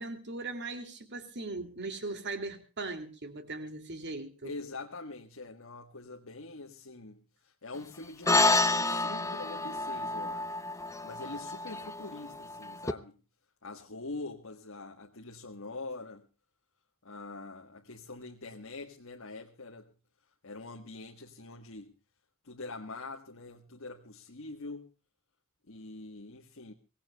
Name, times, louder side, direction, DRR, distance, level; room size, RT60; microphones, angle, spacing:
voice 1, 0.0-4.5, right 3 dB, 55° right, 2.6 m, -39 dB
voice 2, 4.4-13.2 13.6-16.3 17.0-19.9 20.4-21.9 22.4-24.9 25.7-26.7, left 3 dB, 65° left, 1.4 m, -44 dB
sound 1, 8.3-12.9, left 2 dB, 15° left, 0.7 m, -29 dB
24.0 x 17.5 x 2.3 m
head